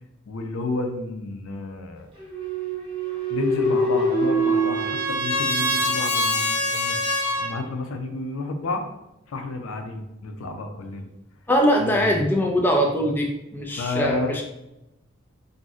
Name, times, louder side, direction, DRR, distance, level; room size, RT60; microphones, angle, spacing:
voice 1, 0.3-2.1 3.3-7.0 7.3-8.8 9.3-11.1 11.8-12.2 13.7-14.4, left 2 dB, 85° left, 5 dB, 0.4 m, -31 dB
sound 1, 2.2-6.0, right 1 dB, 25° right, 0.8 m, -25 dB
Trumpet, 3.6-7.5, left 1 dB, 40° left, 0.7 m, -26 dB
voice 2, 11.5-14.5, equal, 10° left, 0 dB, 0.3 m, -22 dB
2.6 x 2.0 x 3.6 m, 0.90 s
head